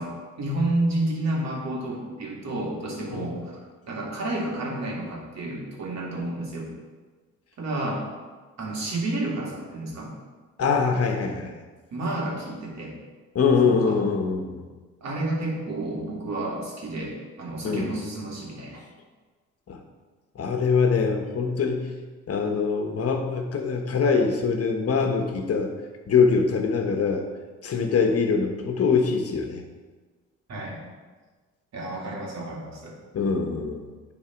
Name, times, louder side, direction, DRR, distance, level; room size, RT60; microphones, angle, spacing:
voice 1, 0.0-3.6 3.8-6.7 7.6-8.0 8.6-10.1 11.9-12.9 13.6-14.0 15.0-18.8 30.5-30.8 31.7-32.9, right 2 dB, 60° right, -2 dB, 2.5 m, -30 dB
voice 2, 10.6-11.5 13.3-14.6 17.6-18.0 19.7-19.8 20.3-22.0 22.3-25.7 26.1-27.3 27.6-29.6 33.1-33.8, left 5 dB, 50° left, 4 dB, 1.3 m, -23 dB
10.0 x 4.2 x 4.6 m, 1.3 s
cardioid pair, 90°, 30 cm